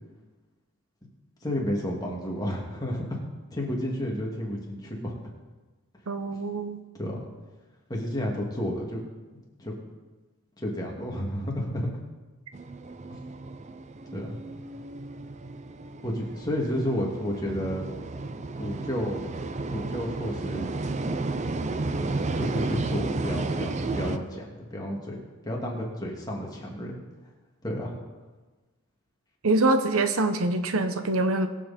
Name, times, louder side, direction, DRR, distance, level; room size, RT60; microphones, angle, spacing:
voice 1, 1.4-3.2 3.5-5.1 6.9-7.2 7.9-9.0 9.6-9.7 10.6-11.9 13.1-13.2 14.1-14.4 16.0-17.8 18.6-19.2 19.7-20.7 22.0-26.9 27.6-27.9, equal, 20° left, -2 dB, 2.5 m, -31 dB
voice 2, 6.1-6.8 29.4-31.5, right 2 dB, 85° right, 9 dB, 1.0 m, -24 dB
sound 1, 12.5-24.2, right 2 dB, 35° right, 0.5 m, -32 dB
22.0 x 7.6 x 4.4 m, 1.2 s
head